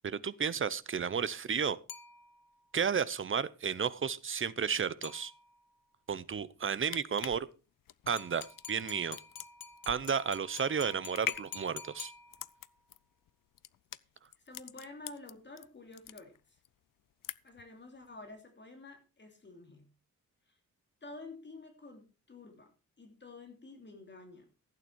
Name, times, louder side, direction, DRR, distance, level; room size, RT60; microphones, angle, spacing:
voice 1, 0.0-1.8 2.7-5.3 6.1-7.5 8.1-9.2 9.9-12.1, right 6 dB, 35° right, 17 dB, 0.8 m, -32 dB
sound 1, 1.9-2.7 5.0-5.8 8.2-12.8, left 7 dB, 90° left, 1.4 m, -49 dB
sound 2, 6.6-15.7 15.9-16.7 17.0-17.7 18.0-18.2, left 12 dB, 75° left, 0.7 m, -43 dB
voice 2, 14.3-16.6 17.4-19.8 20.5-20.6 21.0-22.7 23.0-24.5, left 2 dB, 30° left, 4 dB, 3.0 m, -50 dB
15.0 x 9.1 x 4.6 m, 0.31 s
wide cardioid pair, 140°, 33 cm